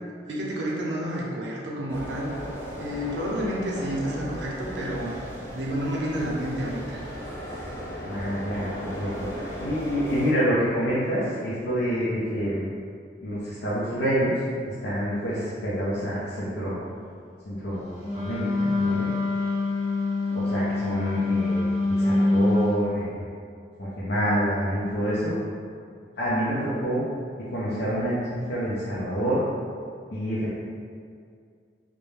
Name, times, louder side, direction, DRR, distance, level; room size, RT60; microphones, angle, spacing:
voice 1, 0.3-2.3 2.8-5.1 5.5-7.0, equal, 85° right, -3 dB, 0.6 m, -30 dB
sound 1, 1.9-10.3, equal, 15° left, 0.4 m, -36 dB
voice 2, 8.0-12.6 13.2-14.3 14.7-16.9 17.5-19.1 20.3-23.2 23.8-25.4 26.2-27.0 27.4-29.4 30.1-30.6, equal, 65° left, -9 dB, 0.5 m, -27 dB
Wind instrument woodwind instrument, 18.0-22.8, left 2 dB, 35° left, 0.8 m, -25 dB
2.4 x 2.1 x 3.0 m, 2.2 s
head